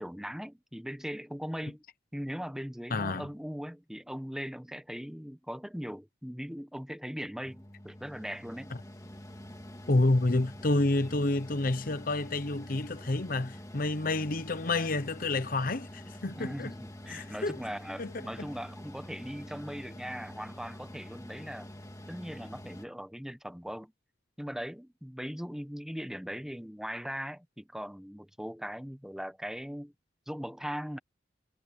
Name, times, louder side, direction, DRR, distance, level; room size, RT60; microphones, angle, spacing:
voice 1, 0.0-1.8 2.1-8.7 16.3-21.7 22.1-23.9 24.4-29.9 30.3-31.0, equal, 5° right, 1.1 m, -39 dB
voice 2, 2.9-3.3 9.9-16.7 17.1-17.6 18.0-18.1, left 2 dB, 50° left, 0.9 m, -29 dB
Mechanical fan, 7.4-22.9, left 1 dB, 20° left, 2.3 m, -46 dB
head